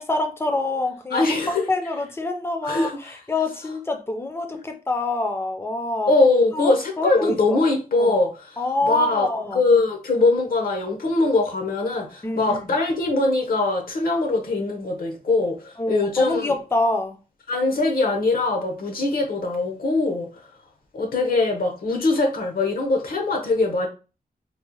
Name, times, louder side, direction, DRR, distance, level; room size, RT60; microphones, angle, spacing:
voice 1, 0.0-1.4 1.7-6.1 6.5-7.6 8.0-8.1 8.6-9.6 12.2-12.6 15.8-17.2, left 2 dB, 15° left, 0.5 m, -26 dB
voice 2, 1.1-1.7 2.6-3.2 6.1-16.6 17.5-20.3 20.9-23.9, left 3 dB, 70° left, 0.8 m, -22 dB
4.0 x 2.0 x 2.9 m
wide cardioid pair, 170°, 16 cm